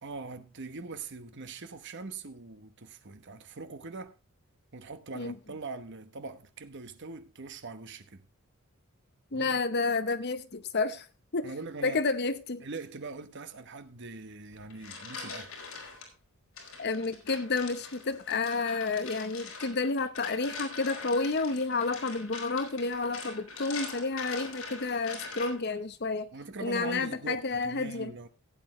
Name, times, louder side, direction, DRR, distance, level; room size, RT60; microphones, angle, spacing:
voice 1, 0.0-4.2 4.7-8.3 9.3-9.6 11.4-12.0 12.6-15.5 26.3-28.3, right 3 dB, 55° right, 1.0 m, -42 dB
voice 2, 9.3-11.1 11.3-11.5 11.8-12.6 16.8-26.3 26.6-28.1, left 3 dB, 50° left, 0.9 m, -30 dB
sound 1, 14.5-16.1 16.6-25.8, left 4 dB, 80° left, 3.9 m, -43 dB
16.0 x 8.6 x 3.1 m
head